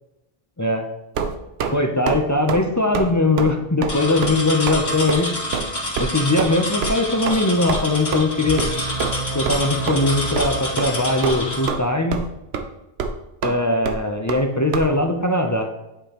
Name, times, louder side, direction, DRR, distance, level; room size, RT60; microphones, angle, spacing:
sound 1, 1.1-1.7 2.1-2.2 2.5-2.7 2.9-3.1 3.4-3.5 3.8-4.0 4.2-4.4 4.7-4.8 5.1-5.2 5.5-5.7 6.0-6.1 6.4-6.5 6.8-6.9 7.3-7.4 7.7-7.8 8.1-8.2 8.6-8.7 9.0-9.2 9.5-9.6 9.9-10.0 10.4-10.5 10.8-10.9 11.2-11.8 12.1-12.3 12.5-12.6 13.0-13.1 13.4-13.5 13.8-14.0 14.3-14.4 14.7-14.9, right 5 dB, 85° right, 0.9 m, -25 dB
voice 1, 1.7-5.3 6.0-8.6 9.3-12.2 13.4-15.7, left 2 dB, 25° left, 4 dB, 0.5 m, -20 dB
sound 2, 3.9-11.7, left 1 dB, 85° left, 1.8 m, -28 dB
sound 3, 8.5-11.4, right 4 dB, 50° right, 0.6 m, -32 dB
8.8 x 5.0 x 2.9 m, 0.94 s
omnidirectional pair, 1.0 m